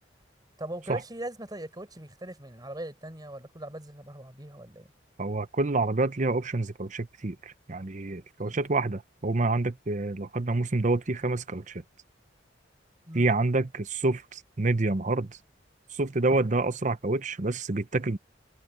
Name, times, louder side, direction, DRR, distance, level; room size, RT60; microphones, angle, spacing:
voice 1, 0.6-4.9 8.4-8.6 13.1-13.3, right 1 dB, 20° right, 5.2 m, -40 dB
voice 2, 5.2-11.8 13.1-15.4 15.9-18.2, right 2 dB, 40° right, 0.8 m, -28 dB
head